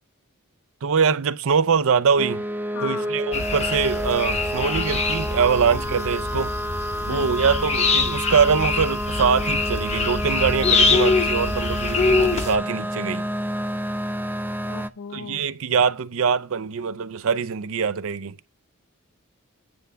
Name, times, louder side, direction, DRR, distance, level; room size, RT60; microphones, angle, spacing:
voice 1, 0.8-2.4 2.8-6.5 7.0-13.2 15.1-18.3, right 6 dB, 65° right, 0.5 m, -23 dB
sound 1, 2.2-14.9, equal, 10° right, 0.4 m, -29 dB
voice 2, 2.7-3.2 5.7-6.0 7.1-7.5 14.6-15.4, left 5 dB, 75° left, 0.6 m, -37 dB
sound 2, 3.3-12.6, left 4 dB, 30° left, 0.8 m, -24 dB
9.7 x 3.4 x 6.7 m
head